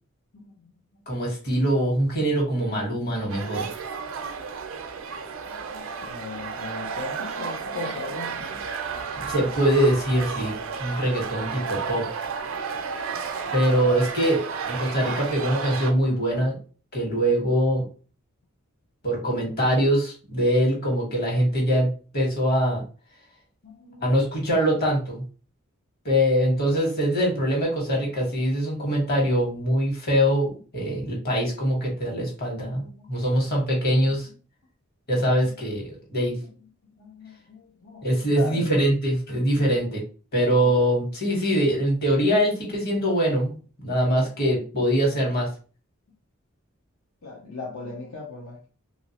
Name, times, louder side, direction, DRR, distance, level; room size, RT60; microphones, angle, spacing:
voice 1, 0.3-0.8 5.5-8.7 13.1-13.6 23.6-24.1 32.4-34.1 35.4-35.5 36.4-36.5 36.9-38.7 39.3-39.6 47.2-48.7, left 3 dB, 75° left, 0.7 m, -40 dB
voice 2, 1.1-3.7 9.3-12.1 13.5-16.6 16.9-17.8 19.0-22.8 24.0-25.2 26.0-34.3 35.1-36.4 38.0-40.0 40.3-45.5, equal, 50° left, 1.4 m, -23 dB
sound 1, 3.3-15.9, right 5 dB, 70° right, 0.5 m, -32 dB
3.0 x 2.5 x 2.8 m
head